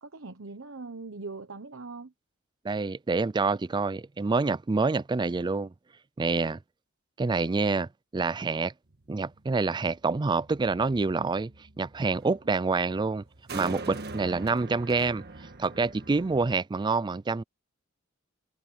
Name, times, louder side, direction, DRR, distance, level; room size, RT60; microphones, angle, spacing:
voice 1, 0.0-2.1, right 3 dB, 70° right, 1.2 m, -41 dB
voice 2, 2.6-5.7 6.2-6.6 7.2-8.7 9.1-11.5 11.8-13.2 13.5-15.2 15.6-17.4, right 4 dB, 20° right, 0.4 m, -27 dB
sound 1, 8.9-16.6, right 3 dB, 55° right, 1.6 m, -44 dB
head